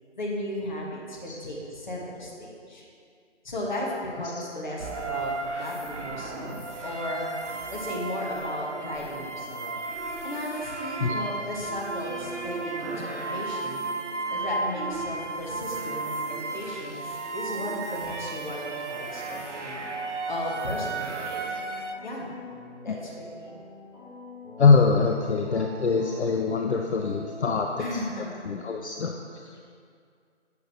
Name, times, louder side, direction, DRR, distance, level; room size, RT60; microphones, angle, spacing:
voice 1, 0.1-2.8 3.4-6.6 6.8-7.3 7.7-9.7 10.2-13.8 14.3-19.8 20.3-21.4 22.0-22.3 22.8-23.6 27.8-28.5, left 1 dB, 40° left, -4 dB, 1.4 m, -35 dB
sound 1, 4.8-21.9, right 3 dB, 75° right, 0.8 m, -34 dB
sound 2, 11.1-27.9, equal, ahead, 1.0 m, -46 dB
voice 2, 24.6-29.7, left 4 dB, 65° left, 2 dB, 0.5 m, -24 dB
8.1 x 6.4 x 2.9 m, 2.3 s
figure-of-eight pair, 155°, 36 cm